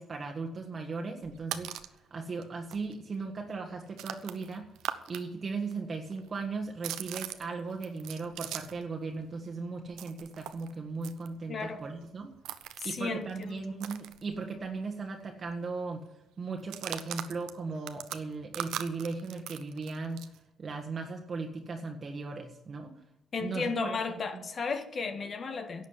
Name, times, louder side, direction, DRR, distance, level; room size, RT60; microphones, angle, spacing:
voice 1, 0.0-4.7 5.1-12.3 12.8-16.0 16.4-20.3 20.6-22.9 23.4-24.0 24.3-24.4, right 4 dB, 40° right, 3 dB, 1.6 m, -37 dB
sound 1, 1.2-2.0 2.4-2.5 2.7-5.2 5.5-8.9 9.2-14.8 15.1-15.2 15.5-15.8 16.6-20.4, right 12 dB, 90° right, 0.9 m, -41 dB
voice 2, 11.5-11.8 12.8-13.6 23.3-25.9, left 4 dB, 45° left, 8 dB, 1.6 m, -34 dB
11.5 x 7.3 x 9.7 m, 0.89 s
cardioid pair, 90°, 0 cm